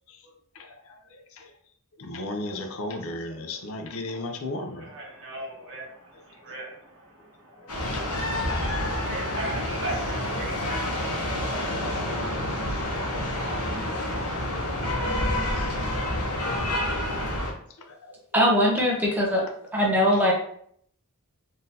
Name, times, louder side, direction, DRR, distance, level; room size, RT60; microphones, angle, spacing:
voice 1, 0.0-1.5 2.0-5.7 7.6-8.0 12.7-13.5 16.0-16.2 17.8-18.2 20.1-20.2, left 2 dB, 65° left, 5 dB, 0.5 m, -37 dB
voice 2, 4.8-12.9, right 1 dB, 60° right, -3 dB, 1.2 m, -40 dB
sound 1, 7.7-17.5, left 1 dB, 85° left, 1.0 m, -28 dB
voice 3, 18.3-19.4 19.7-20.3, equal, 10° right, -2 dB, 0.7 m, -21 dB
3.8 x 2.6 x 2.7 m, 0.64 s
head